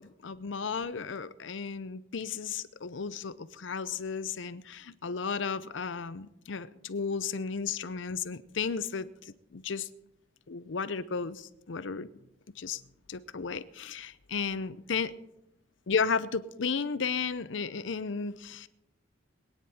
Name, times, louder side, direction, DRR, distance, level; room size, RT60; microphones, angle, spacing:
voice 1, 0.0-9.9 10.5-12.1 12.6-12.8 13.1-15.1 15.9-18.7, left 5 dB, 75° left, 15 dB, 0.6 m, -34 dB
22.0 x 9.5 x 4.3 m, 0.85 s
head